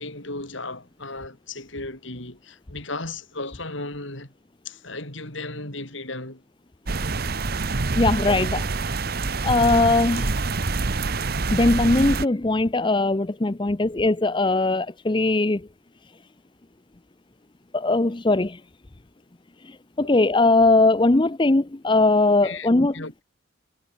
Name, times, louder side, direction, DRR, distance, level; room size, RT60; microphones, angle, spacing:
voice 1, 0.0-4.3 4.6-6.4 20.0-20.2 22.4-22.7 22.9-23.2, left 2 dB, 60° left, 6.1 m, -35 dB
sound 1, 6.9-12.2, right 3 dB, 45° right, 0.9 m, -26 dB
voice 2, 8.0-8.7 9.3-10.4 11.5-15.7 17.7-18.6 19.6-22.9, left 2 dB, 20° left, 0.6 m, -20 dB
head